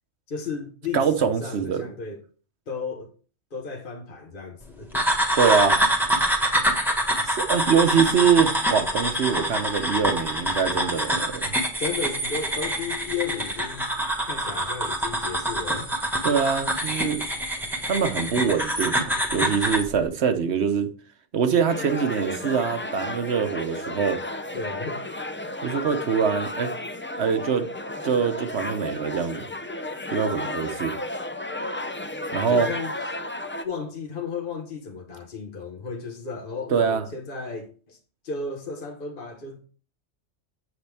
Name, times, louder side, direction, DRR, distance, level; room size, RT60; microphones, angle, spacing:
voice 1, 0.3-2.2 2.7-3.1 3.5-5.1 11.8-14.0 14.2-15.9 24.5-25.1 32.5-32.9 33.6-38.0 38.2-39.7, left 5 dB, 45° left, 1.4 m, -34 dB
voice 2, 0.9-1.8 5.4-5.8 7.2-11.5 16.2-17.2 17.9-20.9 21.3-24.2 25.6-26.7 27.2-27.7 28.0-29.5 30.1-30.9 32.3-32.7 36.7-37.0, right 6 dB, 65° right, 1.1 m, -24 dB
sound 1, 4.9-19.9, right 1 dB, ahead, 1.6 m, -25 dB
sound 2, 21.7-33.6, left 1 dB, 20° left, 0.3 m, -33 dB
8.1 x 7.8 x 3.4 m
omnidirectional pair, 1.2 m